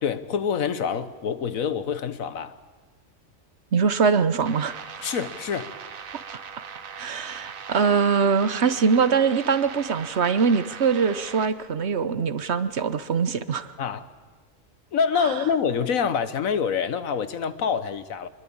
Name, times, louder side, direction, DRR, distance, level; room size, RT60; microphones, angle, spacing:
voice 1, 0.0-2.6 5.0-5.7 13.8-14.0 14.9-18.3, left 6 dB, 85° left, 13 dB, 1.5 m, -26 dB
voice 2, 3.7-4.7 7.0-13.7, right 5 dB, 55° right, 13 dB, 1.2 m, -22 dB
sound 1, 4.5-11.5, right 6 dB, 90° right, 1.5 m, -40 dB
26.0 x 22.0 x 8.7 m, 1.3 s
omnidirectional pair, 1.4 m